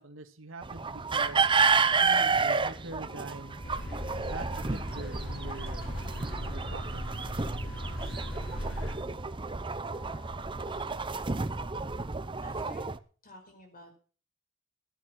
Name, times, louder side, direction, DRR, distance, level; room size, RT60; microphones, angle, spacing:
voice 1, 0.0-1.5 2.0-3.6 4.2-5.9 6.3-7.0, right 2 dB, 85° right, 7 dB, 2.1 m, -44 dB
sound 1, 0.6-13.0, right 4 dB, 25° right, 0.7 m, -30 dB
sound 2, 3.0-12.1, right 3 dB, 5° left, 5.4 m, -55 dB
sound 3, 3.6-8.9, equal, 75° left, 4.4 m, -37 dB
voice 2, 10.5-11.0 12.4-12.8 13.2-14.0, left 1 dB, 45° left, 5 dB, 5.1 m, -51 dB
14.5 x 10.0 x 6.2 m, 0.39 s
head